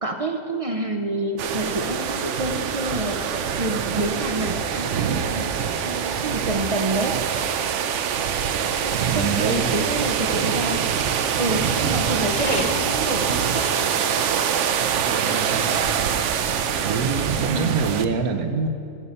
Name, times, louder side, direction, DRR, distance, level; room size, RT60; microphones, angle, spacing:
voice 1, 0.0-3.2 3.6-5.5 5.8-7.2 8.5-10.9 11.4-13.9 17.5-17.8, right 1 dB, 40° right, 4 dB, 0.5 m, -28 dB
sound 1, 1.4-18.0, right 7 dB, 65° right, 0.8 m, -24 dB
voice 2, 9.1-9.7 15.0-15.8 16.8-18.7, right 5 dB, 80° right, 8 dB, 1.3 m, -25 dB
sound 2, 9.5-18.0, left 3 dB, 50° left, 1.3 m, -42 dB
14.5 x 5.5 x 8.4 m, 2.6 s
omnidirectional pair, 1.5 m